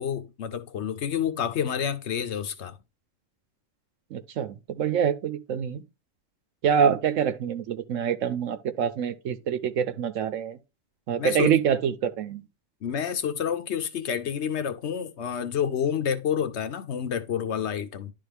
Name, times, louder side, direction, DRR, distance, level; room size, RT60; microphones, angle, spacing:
voice 1, 0.0-2.7 11.2-11.5 12.8-18.1, left 8 dB, 60° left, 1.1 m, -29 dB
voice 2, 4.1-5.8 6.6-10.6 11.1-12.4, right 8 dB, 75° right, 1.0 m, -26 dB
11.0 x 3.7 x 3.4 m
omnidirectional pair, 1.3 m